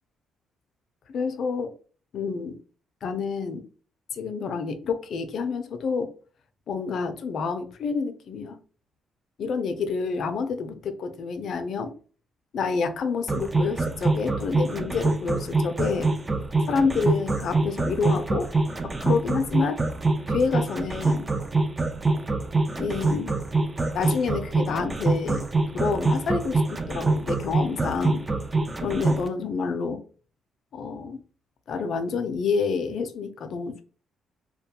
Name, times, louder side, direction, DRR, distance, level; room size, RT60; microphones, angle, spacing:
voice 1, 1.1-1.7 2.1-2.6 3.0-3.7 4.1-6.1 6.7-8.6 9.4-11.9 12.5-16.1 16.7-18.5 18.8-19.8 20.3-21.3 22.8-23.4 23.9-25.5 25.7-28.2 28.8-30.0 30.7-31.2 31.7-33.8, left 5 dB, 65° left, 0.4 m, -28 dB
sound 1, 13.3-29.3, right 3 dB, 25° right, 0.3 m, -24 dB
2.3 x 2.2 x 2.7 m
cardioid pair, 90°, 0 cm